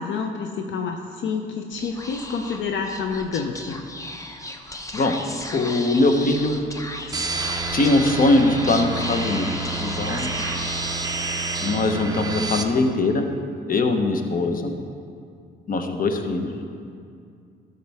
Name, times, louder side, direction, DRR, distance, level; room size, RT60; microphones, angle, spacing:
voice 1, 0.0-3.8, left 5 dB, 70° left, 4 dB, 0.6 m, -28 dB
Speech / Whispering, 1.7-11.5, left 1 dB, 15° left, 0.7 m, -35 dB
voice 2, 5.5-6.6 7.7-10.3 11.6-13.2 13.7-14.7 15.7-16.5, left 2 dB, 45° left, 6 dB, 0.9 m, -21 dB
sound 1, 7.1-12.6, right 3 dB, 20° right, 0.8 m, -28 dB
13.0 x 6.7 x 3.5 m, 2.4 s
cardioid pair, 90°, 20 cm